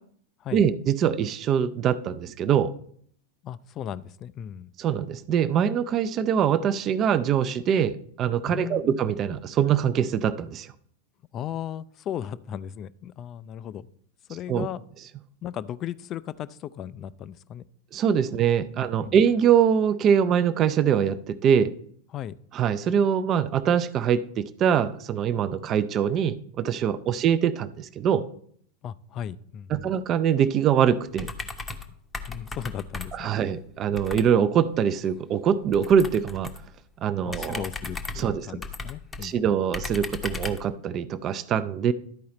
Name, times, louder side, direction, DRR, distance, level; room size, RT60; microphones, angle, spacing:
voice 1, 0.5-2.7 4.8-10.7 14.5-14.7 17.9-21.7 22.5-28.2 29.7-31.3 33.1-36.5 37.0-37.7 38.2-38.5 39.2-41.9, right 8 dB, 30° right, 0.4 m, -23 dB
voice 2, 3.4-4.7 8.5-9.0 11.3-13.9 14.3-14.8 15.4-17.6 18.3-18.4 18.8-19.2 22.1-22.3 28.8-29.9 32.2-33.6 37.2-39.5, left 10 dB, 30° left, 0.3 m, -36 dB
sound 1, 31.1-31.9 32.1-33.3 34.0-34.3 35.7-36.7 37.3-39.3 39.7-40.7, left 4 dB, 15° left, 0.7 m, -36 dB
12.0 x 4.7 x 4.1 m
figure-of-eight pair, 90°, 0 cm